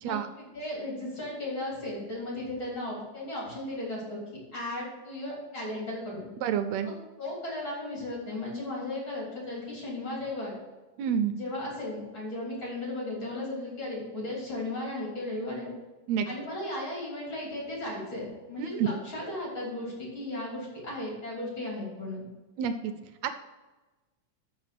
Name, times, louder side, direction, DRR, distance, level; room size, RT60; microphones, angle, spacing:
voice 1, 0.0-4.2 4.5-6.3 6.8-6.9 7.2-10.5 11.3-15.7 16.3-22.3, left 1 dB, 40° left, -4 dB, 3.6 m, -36 dB
voice 2, 6.4-6.9 11.0-11.3 16.1-16.3 18.6-18.9 22.6-22.9 23.2-23.3, right 8 dB, 80° right, 9 dB, 1.6 m, -28 dB
13.0 x 4.4 x 5.8 m, 1.2 s
omnidirectional pair, 3.5 m